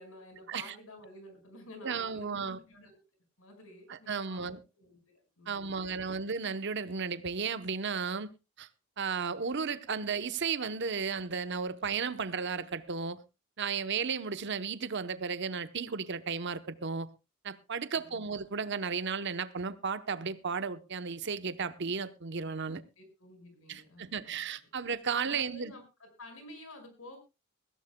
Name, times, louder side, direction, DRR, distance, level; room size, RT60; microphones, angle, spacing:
voice 1, 0.0-2.9 3.4-6.2 17.9-18.2 23.0-24.4 25.2-27.2, left 1 dB, 85° left, 5.2 m, -51 dB
voice 2, 1.8-2.6 3.9-4.6 5.5-8.3 8.6-8.7 9.0-13.2 13.6-17.1 17.4-22.8 23.7-25.7, right 5 dB, 55° right, 0.9 m, -34 dB
20.5 x 15.5 x 2.2 m
head